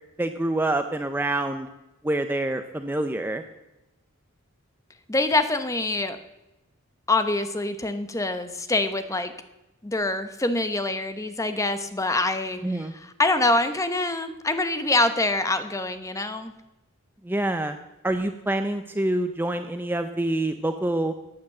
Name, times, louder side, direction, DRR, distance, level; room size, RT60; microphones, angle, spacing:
voice 1, 0.2-1.7 2.0-3.4 12.6-12.9 17.2-17.8 18.0-21.1, right 1 dB, 10° right, 7 dB, 0.5 m, -26 dB
voice 2, 5.1-6.2 7.1-9.3 9.8-16.5, left 2 dB, 15° left, 9 dB, 0.8 m, -25 dB
14.0 x 9.1 x 7.6 m, 0.97 s
head